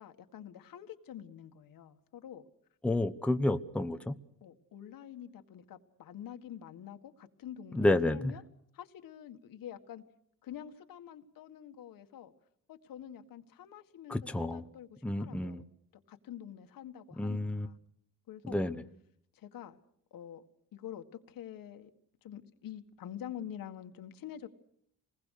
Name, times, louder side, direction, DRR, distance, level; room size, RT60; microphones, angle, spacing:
voice 1, 0.0-2.4 4.4-8.4 8.7-10.0 10.4-12.3 12.7-15.6 16.1-17.7 18.3-18.6 19.3-19.8 20.1-20.4 20.7-21.9 22.2-24.5, left 10 dB, 75° left, 8 dB, 1.9 m, -47 dB
voice 2, 2.8-4.2 7.7-8.3 14.1-14.6 15.0-15.6 17.2-17.7 18.5-18.8, left 1 dB, 5° left, 8 dB, 0.9 m, -30 dB
27.0 x 20.5 x 6.6 m, 0.68 s
cardioid pair, 125°, 34 cm